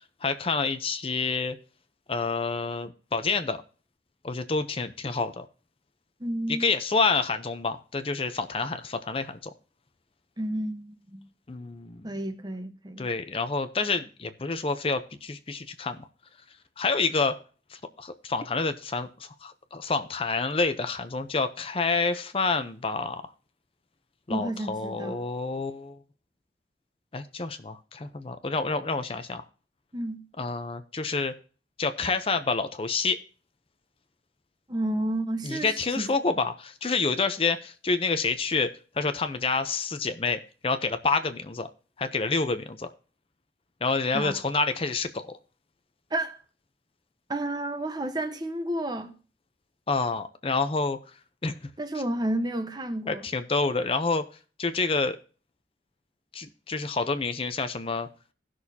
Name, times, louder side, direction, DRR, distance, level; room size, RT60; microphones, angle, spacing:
voice 1, 0.2-1.6 2.1-3.6 4.2-5.5 6.5-9.5 11.5-12.1 13.0-16.1 16.8-17.4 17.7-23.2 24.3-26.0 27.1-29.5 30.4-31.3 31.8-33.2 35.4-41.7 42.0-42.9 43.8-45.4 49.9-51.0 51.4-51.7 53.1-54.2 54.6-55.2 56.3-58.1, left 4 dB, 30° left, 0.6 m, -28 dB
voice 2, 6.2-6.7 10.4-11.3 12.0-13.1 24.3-25.2 29.9-30.2 34.7-35.7 36.0-36.1 44.1-44.3 46.1-46.4 47.3-49.1 51.8-53.2, right 1 dB, 25° right, 1.0 m, -31 dB
17.0 x 6.3 x 2.8 m
head